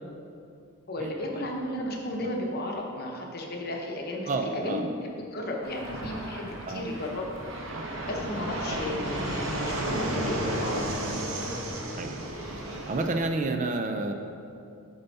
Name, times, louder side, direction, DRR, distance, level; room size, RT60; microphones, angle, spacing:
voice 1, 0.9-7.3 8.0-11.0, left 1 dB, 45° left, 0 dB, 0.8 m, -34 dB
voice 2, 4.3-4.9 6.7-6.8 7.7-7.8 8.7-8.8 9.2-9.3 12.0-12.2 12.9-14.1, right 2 dB, 35° right, 5 dB, 0.3 m, -30 dB
Fixed-wing aircraft airplane, 5.6-13.3, right 1 dB, 60° right, 0.8 m, -33 dB
6.9 x 5.6 x 4.0 m, 2.4 s
head